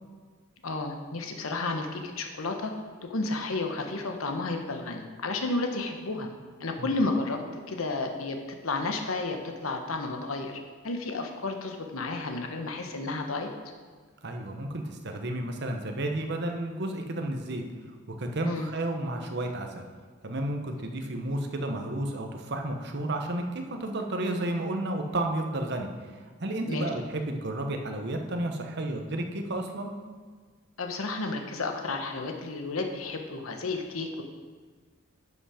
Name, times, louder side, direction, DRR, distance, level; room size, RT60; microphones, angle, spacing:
voice 1, 0.6-2.7 3.1-6.3 6.6-7.4 7.7-8.4 8.6-13.5 18.4-18.7 26.7-26.9 30.8-34.2, left 3 dB, 85° left, 4 dB, 1.1 m, -32 dB
voice 2, 14.2-17.6 18.2-19.8 20.2-25.9 26.4-29.9, right 1 dB, 55° right, 4 dB, 1.0 m, -32 dB
10.5 x 5.6 x 5.0 m, 1.5 s
head